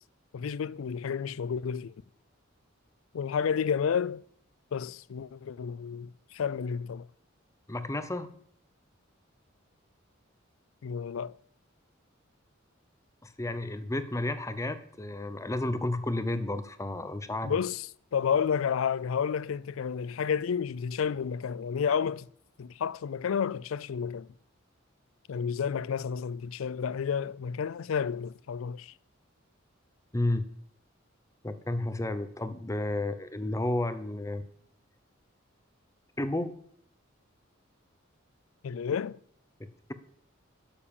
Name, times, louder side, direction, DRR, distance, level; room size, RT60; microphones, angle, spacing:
voice 1, 0.3-1.9 3.1-4.2 4.7-7.1 10.8-11.4 17.4-17.8 18.1-22.3 22.6-24.3 25.3-28.9 38.6-39.2, left 7 dB, 85° left, 0.4 m, -31 dB
voice 2, 7.7-8.3 13.2-17.6 30.1-30.4 31.4-34.4 36.2-36.5, left 1 dB, 15° left, 0.7 m, -32 dB
12.0 x 7.1 x 7.1 m
head